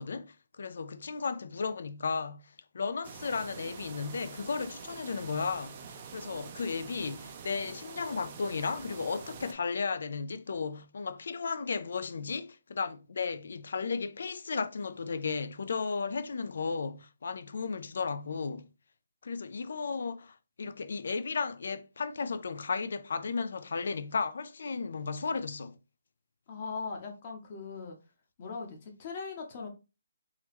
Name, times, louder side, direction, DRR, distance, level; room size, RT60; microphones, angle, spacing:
voice 1, 0.0-18.7 19.2-25.8, left 5 dB, 60° left, 0.4 m, -34 dB
sound 1, 3.0-9.5, right 6 dB, 25° right, 0.4 m, -46 dB
voice 2, 26.5-28.0 28.4-29.7, left 4 dB, 30° left, 0.8 m, -39 dB
3.8 x 2.9 x 3.0 m
hypercardioid pair, 170°, 0 cm